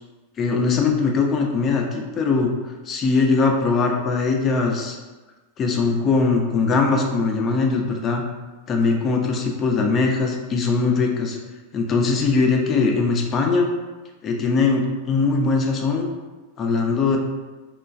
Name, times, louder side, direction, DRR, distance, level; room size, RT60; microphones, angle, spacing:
voice 1, 0.4-5.0 5.6-8.2 8.7-11.4 11.7-13.7 14.2-16.1 16.6-17.2, left 4 dB, 30° left, 1 dB, 0.4 m, -21 dB
3.0 x 2.2 x 2.4 m, 1.2 s
figure-of-eight pair, 90°, 0 cm